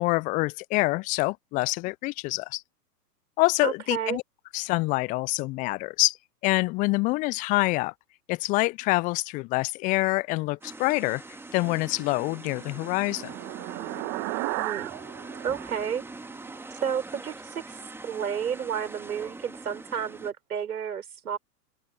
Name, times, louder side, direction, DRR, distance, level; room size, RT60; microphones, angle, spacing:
voice 1, 0.0-2.6 3.4-4.2 4.5-6.2 6.4-7.9 8.3-11.2 11.5-13.3, left 23 dB, 15° left, 0.6 m, -26 dB
voice 2, 3.6-4.2 14.6-14.9 15.4-16.0 16.8-21.4, right 8 dB, 65° right, 4.5 m, -31 dB
sound 1, 10.6-20.3, right 2 dB, 5° right, 2.0 m, -43 dB
sound 2, 11.9-16.7, right 28 dB, 30° right, 1.8 m, -36 dB
open air
figure-of-eight pair, 110°, 48 cm